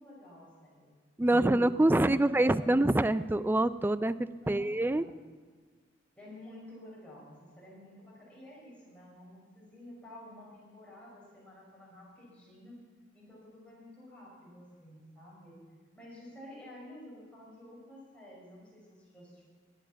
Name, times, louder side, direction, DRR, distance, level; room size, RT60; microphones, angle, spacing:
voice 1, 0.0-1.6 1.9-2.7 4.3-5.1 6.1-12.7 13.1-15.6 15.9-19.4, left 1 dB, 5° left, -5 dB, 5.8 m, -51 dB
voice 2, 1.2-5.0, right 1 dB, 10° right, 15 dB, 0.3 m, -26 dB
18.5 x 10.5 x 5.8 m, 1.5 s
head